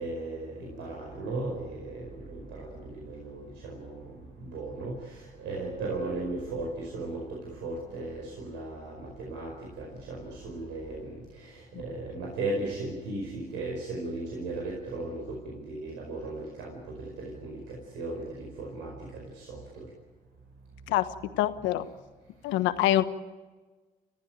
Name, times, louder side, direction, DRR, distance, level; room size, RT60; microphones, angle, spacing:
voice 1, 0.0-19.8, right 2 dB, 75° right, -1 dB, 5.0 m, -37 dB
voice 2, 20.9-21.9 22.4-23.0, left 14 dB, 80° left, 11 dB, 1.3 m, -26 dB
29.5 x 15.0 x 9.2 m, 1.3 s
hypercardioid pair, 55°, 19 cm